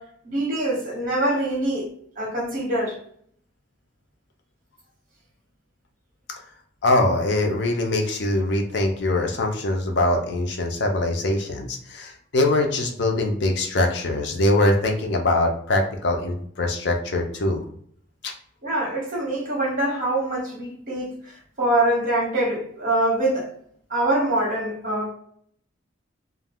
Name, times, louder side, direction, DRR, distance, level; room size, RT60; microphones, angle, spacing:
voice 1, 0.0-3.0 18.6-23.5 23.9-25.1, right 1 dB, 45° right, 1.0 m, -24 dB
voice 2, 6.8-17.6 18.2-18.3, left 2 dB, 60° left, 0.5 m, -23 dB
2.3 x 2.2 x 3.4 m
head